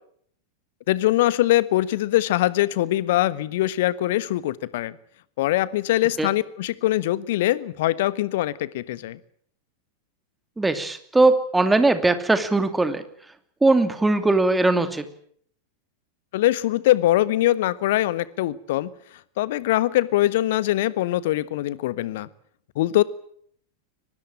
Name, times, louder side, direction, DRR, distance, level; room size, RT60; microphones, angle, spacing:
voice 1, 0.9-5.0 5.4-9.2 16.3-18.9 19.4-22.3 22.7-23.0, left 15 dB, 55° left, 17 dB, 1.3 m, -22 dB
voice 2, 10.6-13.0 13.6-15.0, right 2 dB, 10° right, 9 dB, 2.6 m, -20 dB
23.5 x 20.0 x 8.9 m, 0.65 s
figure-of-eight pair, 90°, 0 cm